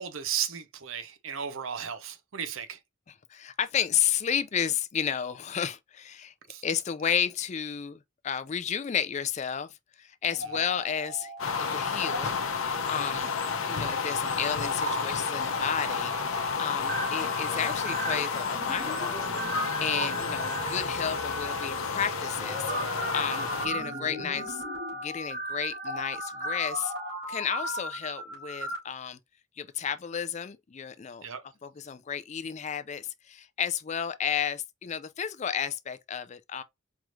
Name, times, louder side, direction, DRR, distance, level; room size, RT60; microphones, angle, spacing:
voice 1, 0.0-2.8 6.5-6.6 31.2-31.4, right 8 dB, 75° right, 0.7 m, -34 dB
voice 2, 3.3-6.3 6.6-11.3 11.7-12.4 12.9-13.3 13.7-19.4 19.8-24.6 24.9-26.9 27.3-29.2 29.6-31.2 31.6-36.6, left 8 dB, 35° left, 0.3 m, -32 dB
sound 1, 10.3-11.7 11.9-12.2 12.7-28.8, equal, 60° right, 2.2 m, -36 dB
sound 2, 11.4-23.7, left 5 dB, 85° left, 0.7 m, -31 dB
4.7 x 3.1 x 2.4 m
head